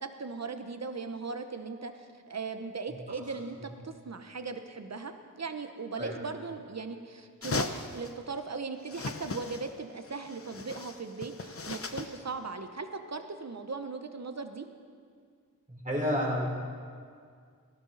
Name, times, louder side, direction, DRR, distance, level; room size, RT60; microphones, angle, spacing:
voice 1, 0.0-14.6, right 4 dB, 50° right, 8 dB, 1.1 m, -38 dB
voice 2, 3.1-3.7 6.0-6.2 15.7-16.5, equal, 25° right, -4 dB, 4.5 m, -32 dB
sound 1, 7.4-8.1 8.9-9.8 10.0-12.2, left 4 dB, 40° left, 0.8 m, -38 dB
17.5 x 12.0 x 4.1 m, 2.1 s
cardioid pair, 45°, 34 cm